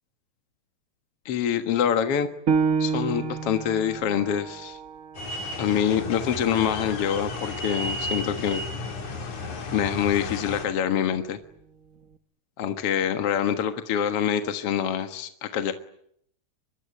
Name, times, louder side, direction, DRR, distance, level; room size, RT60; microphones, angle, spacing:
voice 1, 1.3-2.3 2.8-4.8 5.6-8.6 9.7-11.4 12.6-15.7, left 8 dB, 55° left, 8 dB, 2.3 m, -25 dB
Piano, 2.5-7.6 8.1-8.2 8.8-9.3, right 5 dB, 65° right, 0.8 m, -30 dB
sound 1, 5.1-10.7, left 2 dB, 75° left, 4.6 m, -33 dB
25.0 x 24.0 x 10.0 m, 0.71 s
omnidirectional pair, 3.4 m